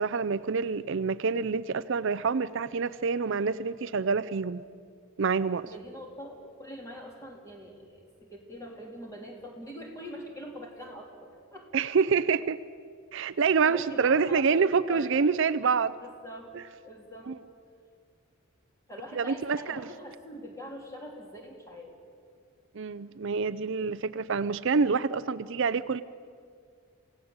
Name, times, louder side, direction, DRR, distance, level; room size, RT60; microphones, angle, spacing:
voice 1, 0.0-4.6 5.2-5.7 11.7-12.6 13.1-16.0 17.3-17.4 19.2-19.8 22.7-26.0, right 5 dB, 60° right, 14 dB, 0.5 m, -27 dB
voice 2, 5.6-11.7 13.4-15.1 16.0-16.5 16.8-17.3 18.9-21.9, equal, 15° left, 0 dB, 3.5 m, -43 dB
28.0 x 17.0 x 8.0 m, 2.2 s
head